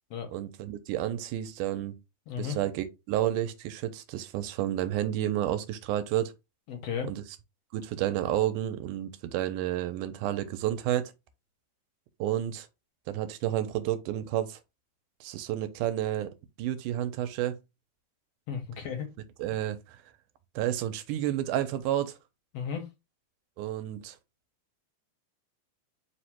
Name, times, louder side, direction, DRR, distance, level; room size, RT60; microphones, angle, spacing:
voice 1, 0.3-1.9 2.4-6.3 7.1-7.2 7.7-11.1 12.2-12.7 13.1-14.6 15.2-16.3 16.6-17.6 19.4-20.0 20.6-22.2 23.6-24.2, right 12 dB, 85° right, 2.1 m, -30 dB
voice 2, 2.3-2.6 6.7-7.1 18.5-19.1 22.5-22.9, left 7 dB, 70° left, 1.5 m, -34 dB
4.9 x 2.1 x 4.4 m
omnidirectional pair, 3.6 m